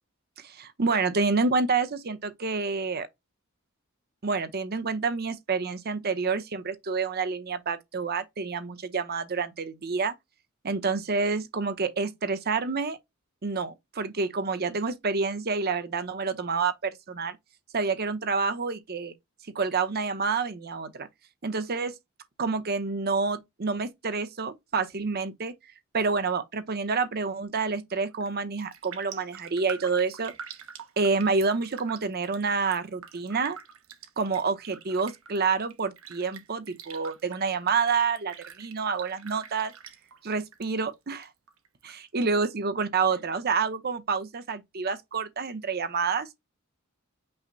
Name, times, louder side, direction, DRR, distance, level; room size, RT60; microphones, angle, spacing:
voice 1, 0.4-3.1 4.2-10.1 10.6-13.0 13.4-17.4 17.7-19.1 19.5-21.1 21.4-21.9 22.4-25.5 25.9-30.3 31.0-33.6 34.2-39.7 40.2-41.3 41.8-46.3, right 4 dB, 50° right, 0.8 m, -28 dB
Raindrop, 28.1-28.3 28.6-40.7 40.9-41.9 42.3-42.4, right 7 dB, 90° right, 1.0 m, -45 dB
5.7 x 2.1 x 3.8 m
head